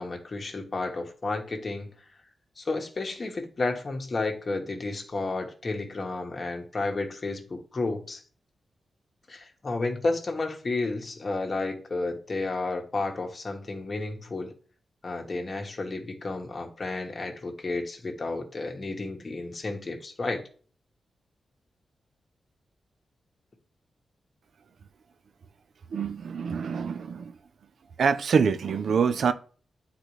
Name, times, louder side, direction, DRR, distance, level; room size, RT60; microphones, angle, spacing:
voice 1, 0.0-1.9 2.6-8.2 9.3-14.5 15.0-20.4, left 3 dB, 35° left, 1.3 m, -32 dB
voice 2, 25.9-27.2 28.0-29.3, right 6 dB, 70° right, 0.6 m, -25 dB
10.5 x 4.0 x 3.2 m
wide cardioid pair, 110°, 0 cm